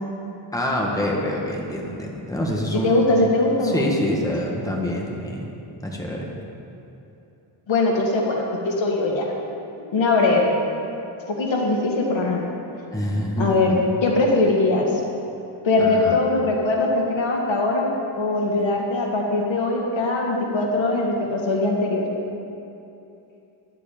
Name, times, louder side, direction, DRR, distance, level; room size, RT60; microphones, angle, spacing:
voice 1, 0.5-3.0 3.6-5.5 5.8-6.3 12.9-13.7 15.8-16.2, left 1 dB, 5° left, -2 dB, 1.7 m, -26 dB
voice 2, 2.7-3.8 7.7-9.3 9.9-10.6 11.3-12.4 13.4-15.0 15.6-22.0, left 2 dB, 65° left, 0 dB, 2.1 m, -21 dB
11.5 x 7.6 x 8.9 m, 2.8 s
wide cardioid pair, 120°, 49 cm